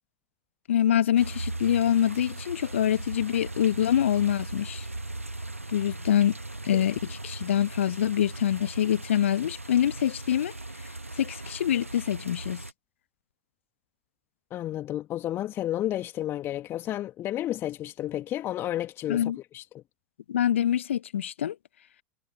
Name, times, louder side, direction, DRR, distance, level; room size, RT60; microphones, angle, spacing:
voice 1, 0.7-4.9 5.7-6.4 6.6-10.5 11.2-12.6 19.1-19.4 20.3-21.6, left 10 dB, 65° left, 1.0 m, -25 dB
sound 1, 1.2-12.7, right 2 dB, 85° right, 1.4 m, -38 dB
voice 2, 14.5-19.8, left 13 dB, 35° left, 1.8 m, -32 dB
figure-of-eight pair, 85°, 7 cm